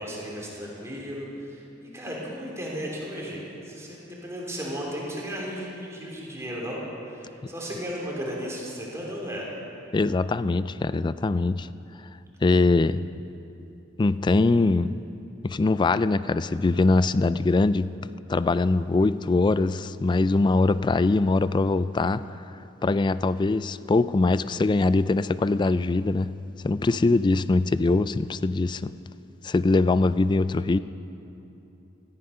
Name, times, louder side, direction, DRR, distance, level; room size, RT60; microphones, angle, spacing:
voice 1, 0.0-6.8 7.1-9.5, equal, 15° right, -4 dB, 3.3 m, -35 dB
voice 2, 9.9-11.7 12.4-13.0 14.0-15.0 15.4-22.3 22.8-26.3 26.6-28.9 29.4-30.8, left 3 dB, 25° left, 15 dB, 0.3 m, -22 dB
17.5 x 14.0 x 5.6 m, 2.9 s
head